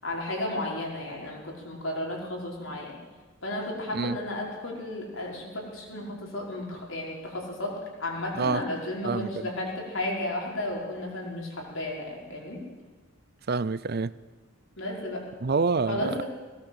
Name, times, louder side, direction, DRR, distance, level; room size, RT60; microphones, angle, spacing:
voice 1, 0.0-3.0 3.4-12.6 14.8-15.2 15.9-16.2, left 1 dB, 70° left, 5.1 m, -33 dB
voice 2, 9.0-9.5 13.5-14.1 15.4-16.1, right 4 dB, 50° right, 0.5 m, -27 dB
20.0 x 17.5 x 7.9 m
head